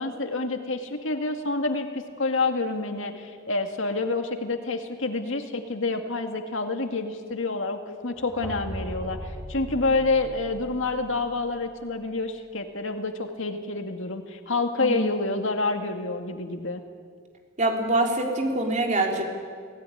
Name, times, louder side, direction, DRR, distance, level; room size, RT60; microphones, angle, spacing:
voice 1, 0.0-16.8, left 3 dB, 80° left, 6 dB, 2.1 m, -28 dB
sound 1, 8.1-12.1, equal, 15° right, 2.9 m, -39 dB
voice 2, 17.6-19.2, right 2 dB, 40° right, 1 dB, 3.7 m, -24 dB
28.0 x 17.5 x 9.9 m, 2.1 s
head